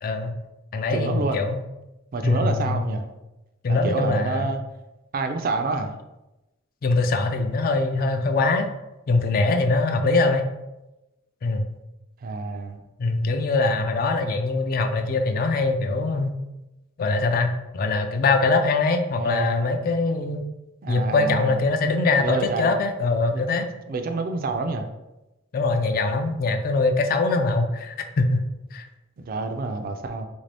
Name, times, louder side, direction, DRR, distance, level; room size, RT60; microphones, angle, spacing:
voice 1, 0.0-0.3 0.7-1.6 2.2-2.9 3.6-4.5 6.8-8.7 9.1-10.4 11.4-11.6 13.0-16.3 17.0-20.4 20.9-23.7 25.5-28.4 28.7-28.9, left 3 dB, 45° left, 6 dB, 0.3 m, -22 dB
voice 2, 0.9-1.4 2.1-3.1 3.7-4.6 5.1-5.9 12.2-12.8 19.1-19.8 20.8-21.6 22.2-22.7 23.3-23.4 23.9-24.9 29.2-30.3, right 3 dB, 45° right, 6 dB, 0.3 m, -28 dB
3.2 x 2.6 x 3.3 m, 0.98 s
head